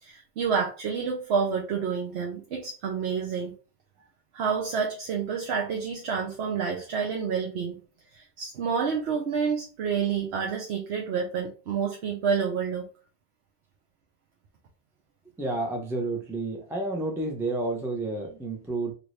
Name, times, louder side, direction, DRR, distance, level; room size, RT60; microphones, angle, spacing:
voice 1, 0.0-3.5 4.3-7.8 8.1-12.9, right 6 dB, 90° right, 0 dB, 0.9 m, -29 dB
voice 2, 15.4-18.9, right 2 dB, 5° right, 1 dB, 0.5 m, -30 dB
2.9 x 2.6 x 3.1 m, 0.35 s
omnidirectional pair, 1.1 m